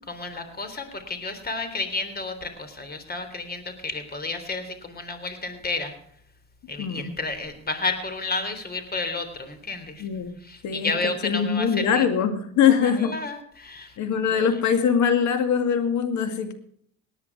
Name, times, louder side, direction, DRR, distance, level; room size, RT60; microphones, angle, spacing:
voice 1, 0.1-5.9 6.7-10.0 10.4-12.1 12.6-14.0 14.3-14.5, left 3 dB, 30° left, 9 dB, 3.6 m, -31 dB
voice 2, 6.8-7.1 10.0-10.3 10.6-10.9 11.2-13.1 14.0-16.5, left 7 dB, 65° left, 8 dB, 2.2 m, -22 dB
18.5 x 9.9 x 4.8 m, 0.66 s
supercardioid pair, 75°, 31 cm